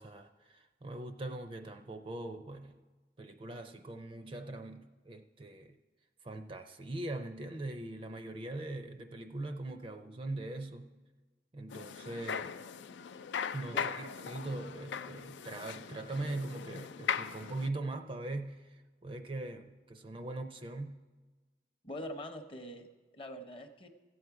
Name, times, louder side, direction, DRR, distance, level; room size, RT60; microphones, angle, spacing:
voice 1, 0.0-2.8 3.2-5.8 6.2-10.9 11.5-12.5 13.5-21.0, right 2 dB, 30° right, 7 dB, 0.5 m, -41 dB
sound 1, 11.7-17.7, left 7 dB, 85° left, 0.4 m, -39 dB
voice 2, 21.8-22.9 23.1-23.9, left 1 dB, 30° left, 6 dB, 0.7 m, -43 dB
14.5 x 7.8 x 4.7 m, 1.3 s
head